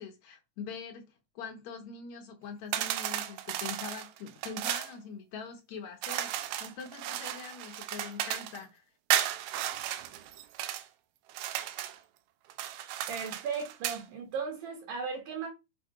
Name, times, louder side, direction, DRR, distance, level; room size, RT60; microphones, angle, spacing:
voice 1, 0.0-8.8, left 6 dB, 70° left, 1.7 m, -43 dB
sound 1, 2.7-4.9 6.0-8.6 9.1-10.8 11.3-12.0 12.5-14.0, right 12 dB, 80° right, 2.5 m, -34 dB
voice 2, 13.1-15.5, right 5 dB, 60° right, 2.8 m, -36 dB
6.5 x 3.3 x 4.9 m
omnidirectional pair, 4.5 m